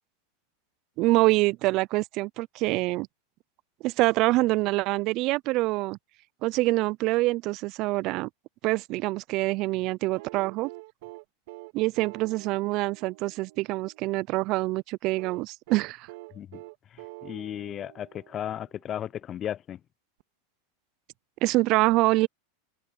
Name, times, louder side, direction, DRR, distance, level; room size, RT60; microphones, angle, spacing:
voice 1, 1.0-3.1 3.8-6.0 6.4-8.3 8.6-10.7 11.7-16.1 21.4-22.3, right 20 dB, 50° right, 0.4 m, -25 dB
sound 1, 10.1-14.2 15.2-18.8 20.2-20.3, right 20 dB, 65° right, 2.3 m, -46 dB
voice 2, 16.9-19.8, left 10 dB, 30° left, 0.3 m, -35 dB
hypercardioid pair, 115°, 0 cm